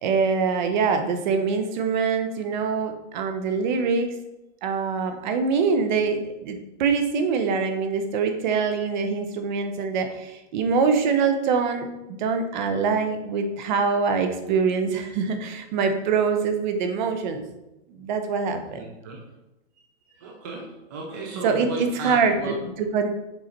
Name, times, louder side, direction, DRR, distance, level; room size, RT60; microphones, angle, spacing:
voice 1, 0.0-4.1 4.6-17.4 18.0-18.8 21.4-23.1, right 5 dB, 40° right, 7 dB, 0.8 m, -24 dB
voice 2, 18.7-19.2 20.1-22.6, right 2 dB, 15° right, -1 dB, 0.4 m, -34 dB
6.8 x 4.8 x 4.2 m, 0.96 s
hypercardioid pair, 155°, 37 cm